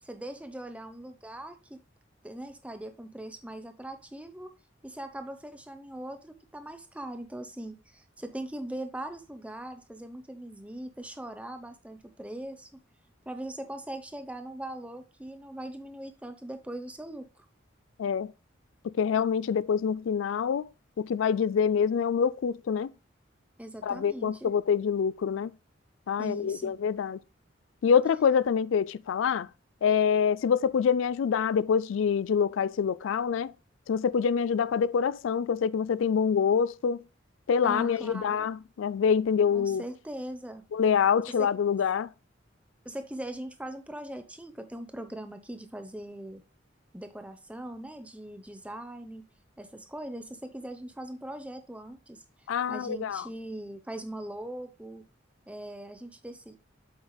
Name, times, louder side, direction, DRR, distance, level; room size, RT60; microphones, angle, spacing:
voice 1, 0.0-1.8 2.2-4.5 4.8-12.8 13.3-17.5 23.6-24.5 26.2-26.7 37.6-38.5 39.5-40.6 41.3-41.5 42.8-46.4 46.9-49.2 49.6-55.0 55.5-56.6, right 1 dB, 5° right, 0.8 m, -40 dB
voice 2, 18.0-18.3 18.8-20.7 21.0-22.9 23.8-25.5 26.1-27.2 27.8-29.5 29.8-33.5 33.9-37.0 37.5-39.8 40.7-42.1 52.5-53.2, left 7 dB, 90° left, 0.4 m, -26 dB
8.0 x 7.4 x 2.3 m
head